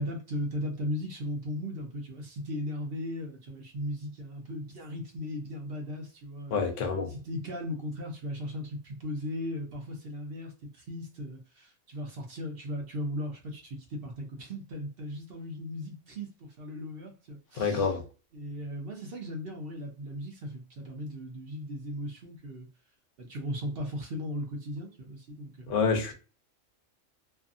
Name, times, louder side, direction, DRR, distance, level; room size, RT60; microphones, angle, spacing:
voice 1, 0.0-6.6 7.1-17.9 18.3-22.7 23.2-25.8, equal, 55° right, 0.7 m, -37 dB
voice 2, 6.5-7.1 17.5-18.0 25.7-26.1, left 5 dB, 75° left, 1.0 m, -27 dB
2.6 x 2.5 x 2.5 m
omnidirectional pair, 1.3 m